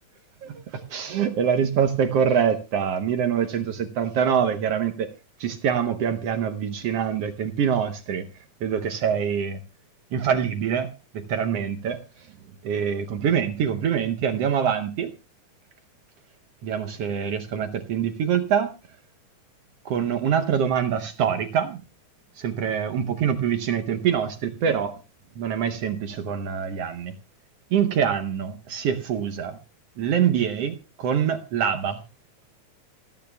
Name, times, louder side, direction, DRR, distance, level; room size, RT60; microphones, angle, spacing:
voice 1, 0.4-5.1 5.4-8.3 8.6-9.6 10.1-10.9 11.1-12.0 12.6-15.1 16.6-18.7 19.8-21.8 22.4-25.0 25.4-27.1 27.7-29.6 30.0-32.0, right 8 dB, 65° right, 8 dB, 1.6 m, -25 dB
27.5 x 9.3 x 2.2 m, 0.27 s
omnidirectional pair, 3.5 m